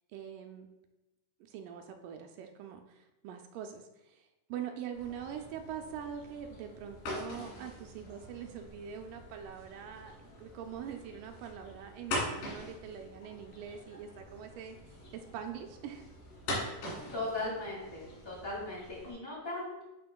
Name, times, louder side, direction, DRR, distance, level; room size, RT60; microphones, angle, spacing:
voice 1, 0.1-0.7 1.5-14.8 15.1-16.1, right 8 dB, 85° right, 5 dB, 2.1 m, -43 dB
sound 1, 4.9-19.1, left 1 dB, 85° left, 3.6 m, -43 dB
voice 2, 17.1-19.8, left 2 dB, 30° left, -6 dB, 2.7 m, -38 dB
11.0 x 4.3 x 2.3 m, 0.99 s
omnidirectional pair, 3.8 m